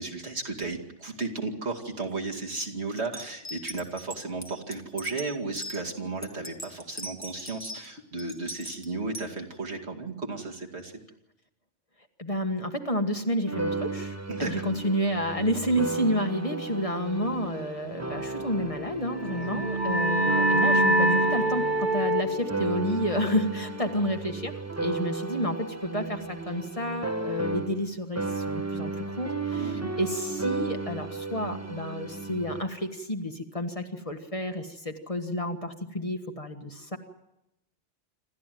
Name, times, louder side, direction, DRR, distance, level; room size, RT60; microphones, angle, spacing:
voice 1, 0.0-10.9 14.3-14.6 19.2-19.6 29.5-29.9, right 3 dB, 65° right, 1 dB, 2.7 m, -34 dB
sound 1, 3.1-5.8 6.2-7.9 8.2-9.3, equal, 15° left, 1.9 m, -40 dB
voice 2, 12.2-24.5 24.8-37.0, equal, 30° left, 4 dB, 1.6 m, -30 dB
sound 2, 13.5-27.9 28.2-32.6, right 3 dB, 15° right, 1.3 m, -34 dB
sound 3, 19.2-24.5, right 1 dB, 45° right, 2.0 m, -26 dB
27.0 x 13.5 x 9.3 m, 0.88 s
omnidirectional pair, 1.2 m